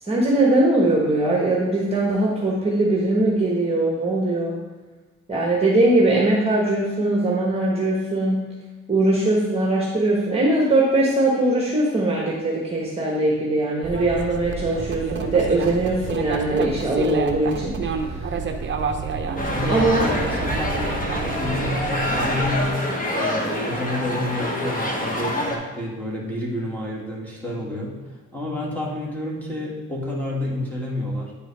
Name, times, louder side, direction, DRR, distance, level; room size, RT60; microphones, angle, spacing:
voice 1, 0.0-4.6 5.3-8.5 8.9-18.3 19.7-20.1, right 2 dB, 20° right, -3 dB, 1.3 m, -21 dB
sound 1, 13.8-22.7, right 5 dB, 40° right, 0.7 m, -29 dB
sound 2, 19.4-25.6, left 1 dB, 30° left, 1.3 m, -26 dB
voice 2, 19.5-28.0 28.3-31.3, left 1 dB, 5° left, -4 dB, 2.0 m, -29 dB
9.7 x 4.4 x 3.4 m, 1.3 s
cardioid pair, 90°, 30 cm